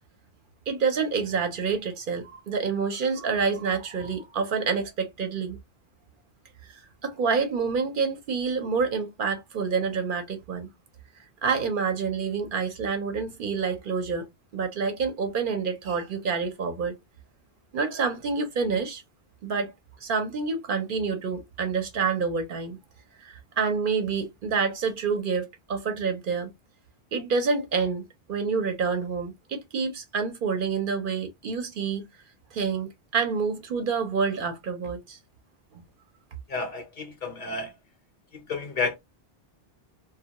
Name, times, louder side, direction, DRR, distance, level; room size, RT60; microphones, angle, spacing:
voice 1, 0.7-5.6 6.7-10.7 11.4-14.3 14.5-16.9 17.7-19.0 19.4-19.7 20.0-22.8 23.2-26.5 27.1-32.0 32.5-35.2 35.7-35.8, right 5 dB, 60° right, 0.7 m, -28 dB
voice 2, 36.5-37.7 38.3-38.9, left 4 dB, 55° left, 0.7 m, -31 dB
2.1 x 2.1 x 2.8 m
omnidirectional pair, 1.0 m